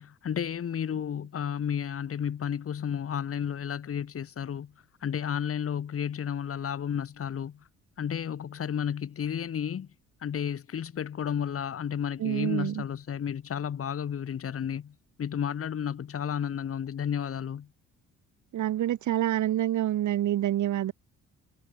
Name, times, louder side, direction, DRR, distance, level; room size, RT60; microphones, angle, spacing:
voice 1, 0.0-4.7 5.0-7.6 8.0-9.9 10.2-17.7, left 8 dB, 50° left, 1.8 m, -32 dB
voice 2, 12.2-12.8 18.5-20.9, right 12 dB, 75° right, 2.7 m, -27 dB
cardioid pair, 90°, 30 cm